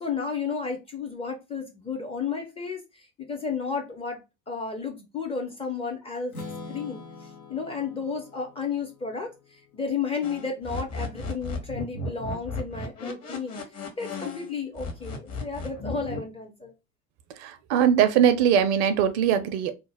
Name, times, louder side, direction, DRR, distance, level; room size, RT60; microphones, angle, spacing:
voice 1, 0.0-4.2 4.5-6.4 6.7-13.6 14.0-16.7, left 5 dB, 15° left, 0.4 m, -32 dB
Strum, 6.3-10.3, left 3 dB, 90° left, 0.7 m, -44 dB
sound 1, 10.2-14.5 14.7-16.2, left 3 dB, 40° left, 0.8 m, -35 dB
voice 2, 17.4-19.7, right 8 dB, 55° right, 0.5 m, -21 dB
2.4 x 2.0 x 3.2 m
figure-of-eight pair, 60°, 42 cm